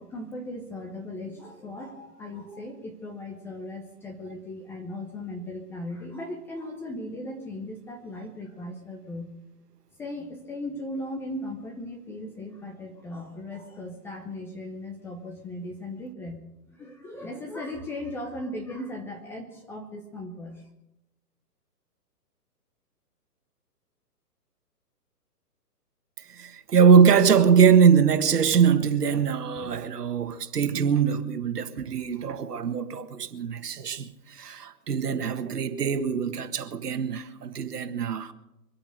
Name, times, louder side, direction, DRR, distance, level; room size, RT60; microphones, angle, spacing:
voice 1, 0.0-9.3 10.0-16.4 16.7-20.7, left 1 dB, 5° left, 0.7 m, -37 dB
voice 2, 26.3-38.3, right 7 dB, 70° right, 1.7 m, -22 dB
24.0 x 8.8 x 6.5 m
hypercardioid pair, 140°, 48 cm